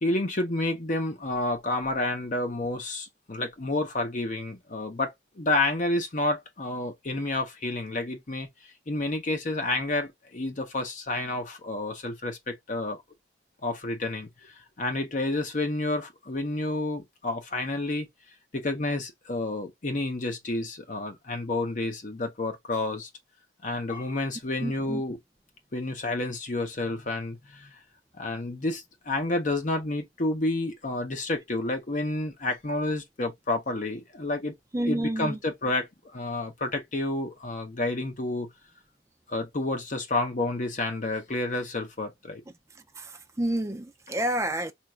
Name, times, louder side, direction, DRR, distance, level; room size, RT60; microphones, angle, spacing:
voice 1, 0.0-8.5 8.9-13.0 13.6-18.1 18.5-23.1 23.6-25.2 25.7-27.7 28.2-34.5 34.8-38.5 39.3-42.4, left 2 dB, 45° left, 0.8 m, -30 dB
voice 2, 24.6-25.0 34.7-35.4 43.0-43.1 43.4-44.7, right 1 dB, 15° right, 0.4 m, -29 dB
3.0 x 2.4 x 4.3 m
head